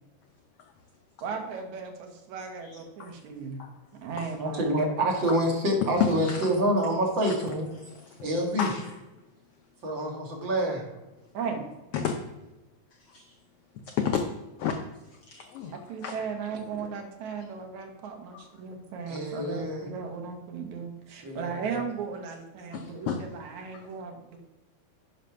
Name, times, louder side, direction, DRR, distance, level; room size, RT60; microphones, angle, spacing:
voice 1, 1.2-3.6 4.0-4.8 11.3-11.7 15.7-24.4, right 5 dB, 75° right, 3 dB, 2.5 m, -36 dB
voice 2, 2.6-3.1 3.6-3.7 4.2-4.3 5.3-5.4 5.8-6.5 7.2-7.3 7.8-8.3 8.6-9.0 11.9-12.2 13.1-13.3 13.7-14.2 14.6-14.7 15.3-16.1 18.3-18.4 22.7-23.2 23.7-23.8, left 7 dB, 80° left, 4 dB, 1.3 m, -31 dB
voice 3, 4.4-7.7 8.2-8.7 9.8-10.8 19.1-19.9 21.2-21.8, equal, 45° right, 0 dB, 2.0 m, -27 dB
9.9 x 4.2 x 5.7 m, 1.0 s
omnidirectional pair, 3.4 m